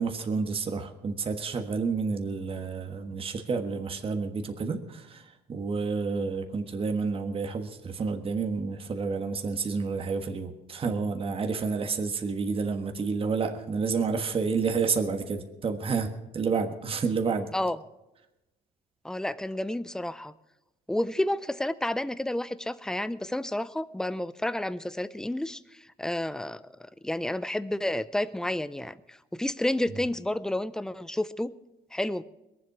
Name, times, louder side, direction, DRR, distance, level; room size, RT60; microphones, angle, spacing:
voice 1, 0.0-17.5, right 5 dB, 35° right, 5 dB, 1.4 m, -30 dB
voice 2, 19.0-20.3 20.9-25.6 26.0-31.5 31.9-32.2, left 1 dB, 5° left, 15 dB, 0.5 m, -30 dB
21.5 x 7.7 x 6.0 m, 0.98 s
cardioid pair, 110°, 17 cm